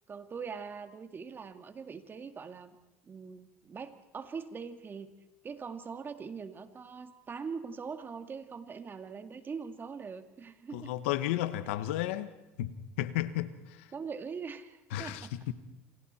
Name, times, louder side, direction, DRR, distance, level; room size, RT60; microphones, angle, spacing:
voice 1, 0.1-2.8 3.0-5.1 5.4-10.9 13.9-15.3, right 5 dB, 30° right, 2.0 m, -42 dB
voice 2, 10.7-12.3 12.6-13.9 14.9-15.5, left 13 dB, 85° left, 1.3 m, -33 dB
27.5 x 27.5 x 4.4 m
supercardioid pair, 85°, 7 cm